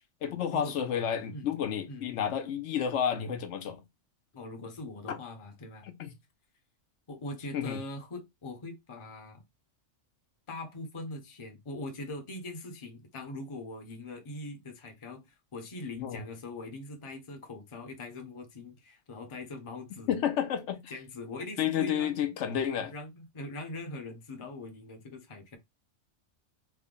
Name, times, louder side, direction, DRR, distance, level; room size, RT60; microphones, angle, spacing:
voice 1, 0.2-3.8 5.1-5.2 5.8-6.1 7.5-7.8 16.0-16.2 20.1-20.9 21.6-22.9, left 9 dB, 75° left, 0.9 m, -31 dB
voice 2, 4.3-5.8 7.1-9.4 10.5-20.2 20.9-22.2 22.9-25.6, left 2 dB, 30° left, 0.6 m, -42 dB
3.3 x 2.1 x 3.6 m
omnidirectional pair, 1.2 m